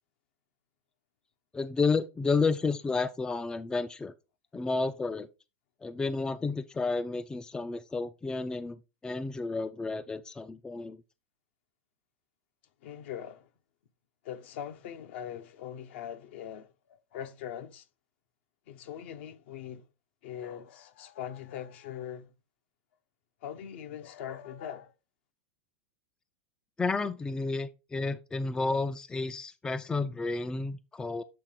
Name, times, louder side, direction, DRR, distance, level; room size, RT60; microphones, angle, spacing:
voice 1, 1.5-4.1 4.5-5.3 5.8-11.0 26.8-31.2, left 3 dB, 10° left, 0.4 m, -31 dB
voice 2, 12.8-13.5 14.2-17.9 18.7-19.9 20.2-22.3 23.4-24.9, left 9 dB, 60° left, 0.8 m, -41 dB
7.7 x 4.0 x 3.6 m
figure-of-eight pair, 90°, 7 cm